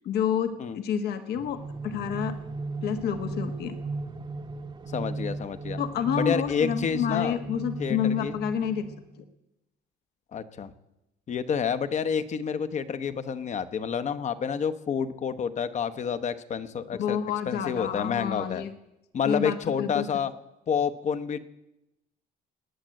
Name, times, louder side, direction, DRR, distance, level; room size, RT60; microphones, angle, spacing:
voice 1, 0.0-2.4 2.8-3.8 5.8-8.9 17.0-18.7 19.3-20.1, left 8 dB, 70° left, 8 dB, 1.3 m, -29 dB
sound 1, 1.3-9.3, right 3 dB, 25° right, 1.0 m, -36 dB
voice 2, 4.9-5.8 6.2-7.4 7.8-8.4 10.3-10.7 11.3-17.2 17.5-18.6 19.1-20.3 20.7-21.4, left 7 dB, 45° left, 12 dB, 1.0 m, -29 dB
19.5 x 9.1 x 7.6 m, 0.93 s
cardioid pair, 110°, 17 cm